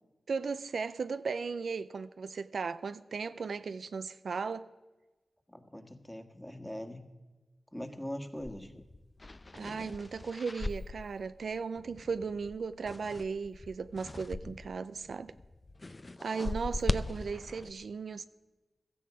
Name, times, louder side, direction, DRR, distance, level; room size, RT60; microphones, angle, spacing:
voice 1, 0.3-4.7 9.5-15.3 16.2-18.2, right 5 dB, 75° right, 0.4 m, -36 dB
voice 2, 5.5-7.1 7.7-8.7, left 1 dB, 10° left, 1.7 m, -41 dB
sound 1, 8.4-14.8 15.0-17.7, left 2 dB, 35° left, 0.6 m, -40 dB
16.0 x 13.0 x 4.9 m
cardioid pair, 45°, 0 cm